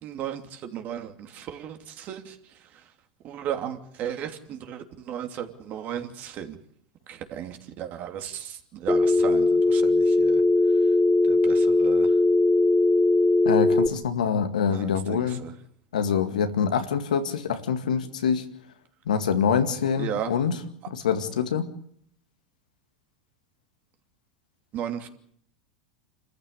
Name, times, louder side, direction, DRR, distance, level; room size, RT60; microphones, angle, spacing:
voice 1, 0.0-2.4 3.2-6.6 7.1-10.4 11.3-12.1 14.7-15.5 20.0-20.3 24.7-25.1, right 9 dB, 45° right, 6 dB, 2.9 m, -35 dB
Telephone, 8.9-13.9, left 2 dB, 5° left, 1.2 m, -20 dB
voice 2, 13.5-15.4 15.9-18.4 19.1-20.6 20.9-21.7, left 7 dB, 90° left, 8 dB, 2.1 m, -25 dB
27.0 x 14.0 x 8.4 m, 0.66 s
hypercardioid pair, 105°, 4 cm